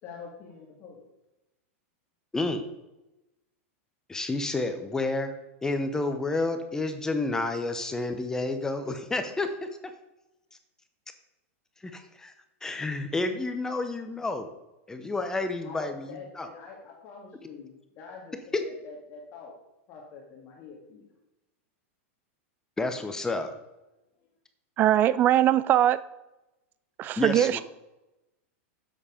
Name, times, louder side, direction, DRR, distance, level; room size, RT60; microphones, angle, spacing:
voice 1, 0.0-1.0 15.6-18.3 18.6-19.6 19.9-21.1, left 5 dB, 35° left, -1 dB, 1.9 m, -45 dB
voice 2, 2.3-2.7 4.1-5.3 5.6-9.7 11.8-12.3 12.6-14.5 14.9-16.5 18.5-18.6 22.8-23.5 27.2-27.6, left 2 dB, 10° left, 8 dB, 0.7 m, -30 dB
voice 3, 24.8-26.0 27.0-27.6, right 11 dB, 25° right, 17 dB, 0.4 m, -21 dB
8.1 x 7.5 x 4.9 m, 0.97 s
supercardioid pair, 150°, 7 cm